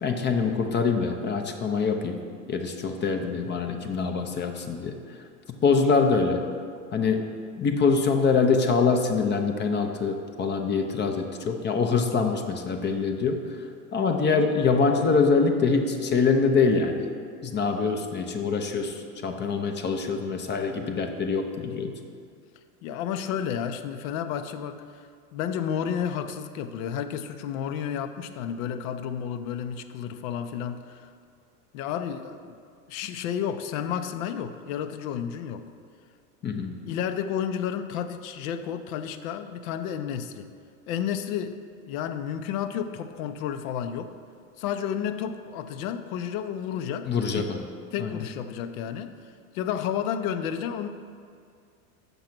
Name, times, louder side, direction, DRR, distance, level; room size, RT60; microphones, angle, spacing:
voice 1, 0.0-2.2 2.5-5.0 5.6-6.4 6.9-13.4 13.9-17.1 17.4-21.9 36.4-36.8 47.1-47.6 48.0-48.1, left 4 dB, 25° left, 5 dB, 0.6 m, -24 dB
voice 2, 22.8-25.0 25.3-31.1 31.7-32.6 32.9-35.7 36.9-40.5 40.9-41.6 41.9-44.2 44.6-47.4 47.9-49.2 49.5-50.9, left 8 dB, 65° left, 10 dB, 0.7 m, -31 dB
7.0 x 5.3 x 6.0 m, 2.3 s
supercardioid pair, 115°, 46 cm